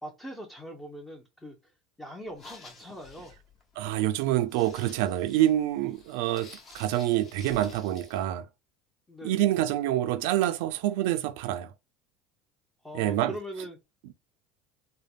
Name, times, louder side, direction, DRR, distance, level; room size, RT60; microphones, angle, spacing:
voice 1, 0.0-3.4 9.1-9.4 12.8-13.8, equal, 10° left, 0.6 m, -42 dB
sound 1, 2.2-8.2, left 4 dB, 35° left, 1.0 m, -51 dB
voice 2, 3.8-8.5 9.2-11.7 12.9-13.3, right 13 dB, 80° right, 0.4 m, -27 dB
3.3 x 2.1 x 2.4 m
supercardioid pair, 125°, 0 cm